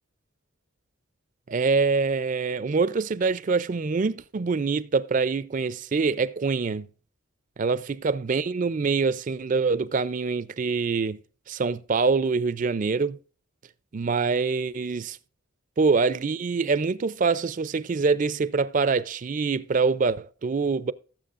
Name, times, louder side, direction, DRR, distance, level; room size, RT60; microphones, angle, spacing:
voice 1, 1.5-6.9 7.6-11.2 11.5-13.2 13.9-15.2 15.8-20.9, right 4 dB, 40° right, 0.4 m, -25 dB
18.0 x 7.3 x 2.5 m
head